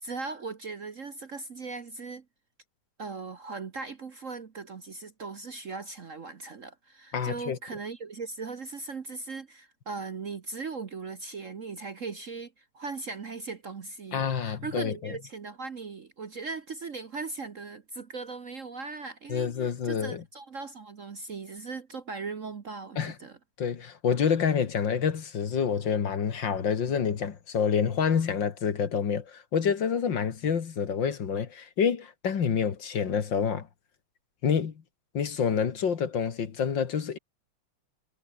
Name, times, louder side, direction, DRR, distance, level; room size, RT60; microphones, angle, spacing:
voice 1, 0.0-2.2 3.0-23.4, right 4 dB, 45° right, 1.3 m, -39 dB
voice 2, 7.1-7.6 14.1-15.2 19.3-20.2 23.0-23.1 23.6-33.7 34.4-34.7 35.1-37.2, left 7 dB, 60° left, 2.4 m, -27 dB
omnidirectional pair, 2.4 m